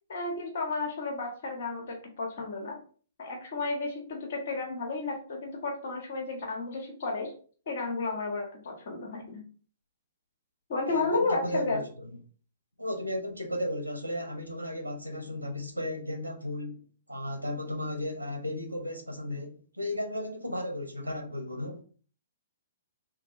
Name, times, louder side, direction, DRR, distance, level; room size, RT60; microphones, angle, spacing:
voice 1, 0.1-2.8 3.2-7.3 7.7-9.4 10.7-11.8, left 3 dB, 50° left, 1.4 m, -32 dB
voice 2, 10.9-12.1 12.8-16.8 17.1-21.8, left 1 dB, 90° left, 0.7 m, -35 dB
3.7 x 3.6 x 2.9 m
figure-of-eight pair, 115°, 0 cm